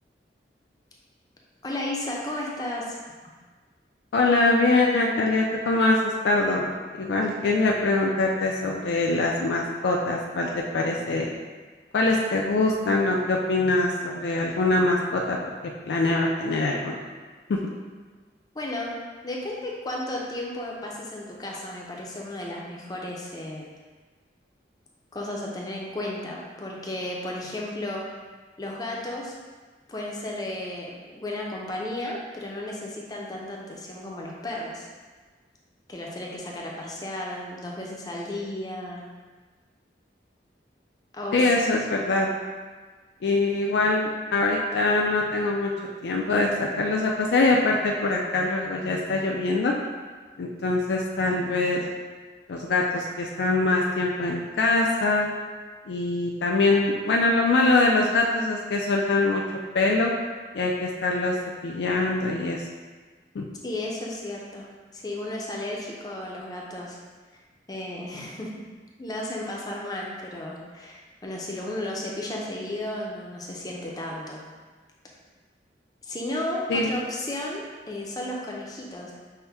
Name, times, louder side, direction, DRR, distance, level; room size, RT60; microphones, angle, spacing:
voice 1, 1.6-3.0 18.5-18.9 19.2-23.7 25.1-28.0 28.6-29.4 29.9-34.9 35.9-39.0 41.1-41.4 63.6-64.7 64.9-67.0 67.7-68.5 69.0-74.4 76.0-79.1, left 1 dB, 20° left, -2 dB, 0.5 m, -34 dB
voice 2, 4.1-6.7 7.0-11.3 11.9-15.4 15.6-17.0 17.5-17.6 41.3-42.3 43.2-45.7 46.0-49.7 50.4-51.8 52.5-55.3 55.9-59.4 59.7-60.1 60.5-61.4 61.6-62.7 63.3-63.4 76.7-77.0, left 2 dB, 75° left, -1 dB, 0.4 m, -23 dB
5.6 x 2.1 x 3.4 m, 1.4 s
head